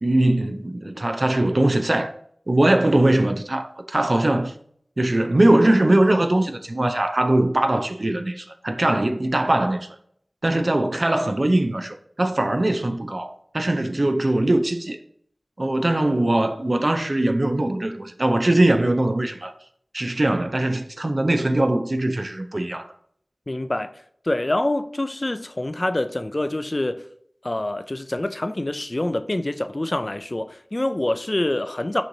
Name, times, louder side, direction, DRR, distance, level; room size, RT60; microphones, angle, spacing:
voice 1, 0.0-2.1 2.5-4.5 5.0-9.9 10.4-15.0 15.6-19.5 19.9-22.9, right 1 dB, 55° right, 0.5 m, -21 dB
voice 2, 23.5-23.9 24.2-27.0 27.4-32.0, left 1 dB, 40° left, 0.3 m, -26 dB
6.3 x 3.0 x 2.6 m
wide cardioid pair, 55°, 0 cm